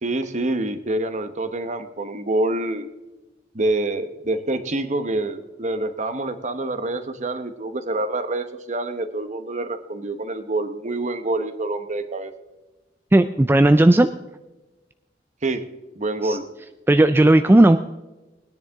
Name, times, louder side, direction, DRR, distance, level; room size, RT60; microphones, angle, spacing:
voice 1, 0.0-2.9 3.5-12.3 15.4-15.6 16.0-16.4, right 2 dB, 45° right, 9 dB, 1.0 m, -26 dB
voice 2, 13.1-14.1 16.2-16.4 16.9-17.8, right 1 dB, 15° right, 10 dB, 0.3 m, -14 dB
20.5 x 10.0 x 3.6 m, 1.1 s
head